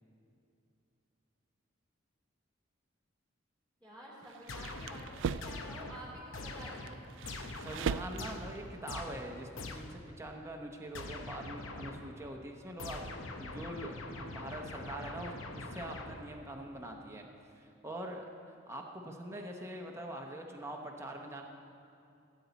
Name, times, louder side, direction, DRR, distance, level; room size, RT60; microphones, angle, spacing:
voice 1, 3.8-7.0, right 1 dB, 10° left, -5 dB, 2.7 m, -49 dB
sound 1, 4.2-5.7 6.4-8.6, right 6 dB, 65° right, 0.3 m, -39 dB
sound 2, 4.5-10.1 10.9-12.2 12.8-16.5, left 2 dB, 75° left, 0.8 m, -44 dB
voice 2, 7.6-17.3 17.5-21.4, right 1 dB, 15° right, 1 dB, 0.8 m, -43 dB
16.5 x 8.4 x 4.0 m, 2.7 s
head